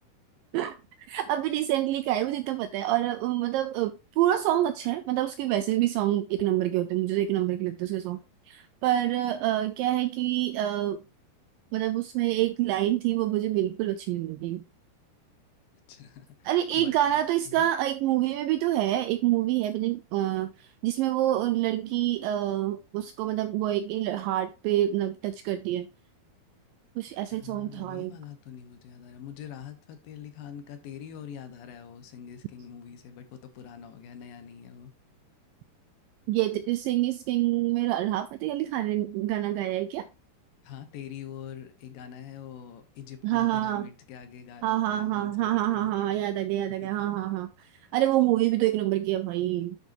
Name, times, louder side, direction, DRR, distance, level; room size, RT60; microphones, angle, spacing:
voice 1, 1.1-8.2 8.5-11.0 11.7-14.6 16.5-25.9 27.0-28.1 36.3-40.0 43.2-43.9 44.6-47.5 47.9-49.8, right 14 dB, 85° right, 2.0 m, -27 dB
voice 2, 15.9-17.7 27.3-34.9 40.6-46.0 46.8-47.0, left 8 dB, 70° left, 2.6 m, -44 dB
10.0 x 6.7 x 2.7 m
omnidirectional pair, 4.4 m